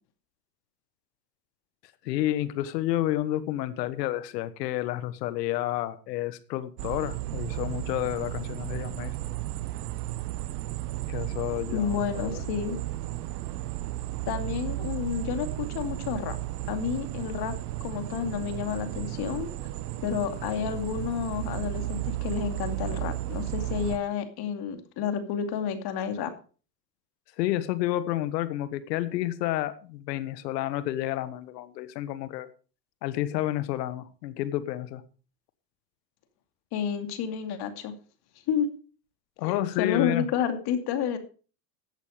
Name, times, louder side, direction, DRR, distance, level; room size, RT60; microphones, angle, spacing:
voice 1, 2.0-9.1 11.1-12.5 27.4-32.5 33.0-35.0 39.4-40.3, left 14 dB, 75° left, 14 dB, 1.5 m, -30 dB
sound 1, 6.8-24.0, right 16 dB, 70° right, 1.3 m, -34 dB
voice 2, 11.7-12.8 14.3-16.4 16.7-17.5 17.8-19.5 20.0-26.3 36.7-37.9 38.5-38.7 39.4-41.2, left 8 dB, 50° left, 8 dB, 2.5 m, -30 dB
14.0 x 8.4 x 5.0 m, 0.38 s
supercardioid pair, 105°, 49 cm